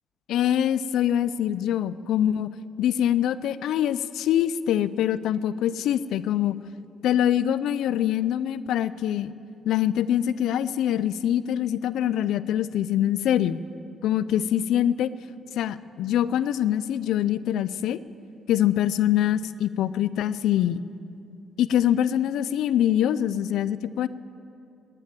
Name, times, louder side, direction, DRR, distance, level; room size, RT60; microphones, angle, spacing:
voice 1, 0.3-2.5 2.8-6.6 7.0-9.3 9.6-13.6 14.0-15.1 15.6-18.0 18.5-20.8 21.6-24.1, left 11 dB, 80° left, 16 dB, 0.5 m, -24 dB
18.5 x 10.0 x 7.7 m, 2.6 s
cardioid pair, 90°, 0 cm